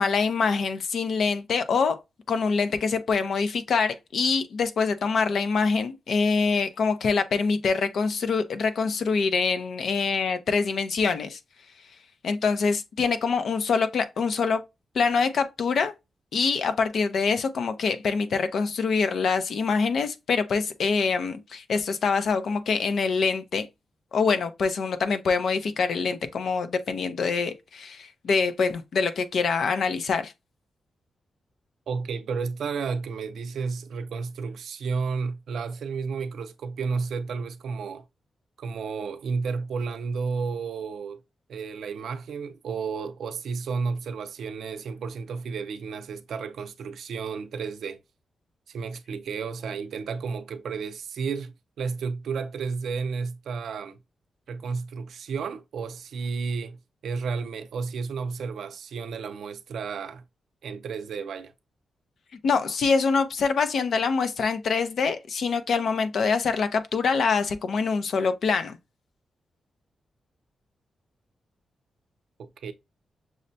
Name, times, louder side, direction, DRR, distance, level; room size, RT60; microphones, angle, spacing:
voice 1, 0.0-2.0 2.3-11.4 12.2-14.6 14.9-15.9 16.3-23.7 24.1-30.3 62.4-68.8, left 5 dB, 65° left, 0.5 m, -25 dB
voice 2, 31.9-38.0 38.6-41.2 41.5-48.0 48.7-54.0 54.5-60.2 60.6-61.5 72.4-72.7, right 5 dB, 80° right, 0.5 m, -32 dB
6.2 x 2.1 x 2.6 m
wide cardioid pair, 135°, 0 cm